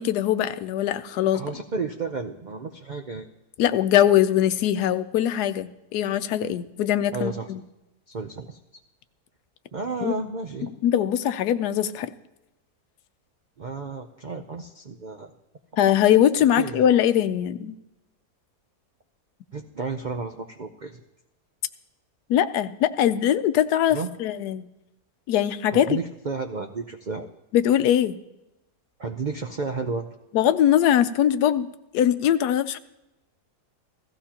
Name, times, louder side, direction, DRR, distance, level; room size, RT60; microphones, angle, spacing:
voice 1, 0.0-1.4 3.6-7.6 10.0-10.1 10.8-12.1 15.8-17.7 22.3-24.7 25.3-26.0 27.5-28.2 30.3-31.7 31.9-32.8, left 10 dB, 80° left, 12 dB, 1.2 m, -21 dB
voice 2, 1.3-3.3 7.1-7.5 8.1-8.6 9.7-10.7 13.6-15.3 16.5-16.8 19.5-21.0 23.9-24.1 25.7-27.3 29.0-30.1, right 4 dB, 75° right, 5 dB, 0.4 m, -32 dB
16.0 x 15.0 x 2.9 m, 0.94 s
omnidirectional pair, 1.7 m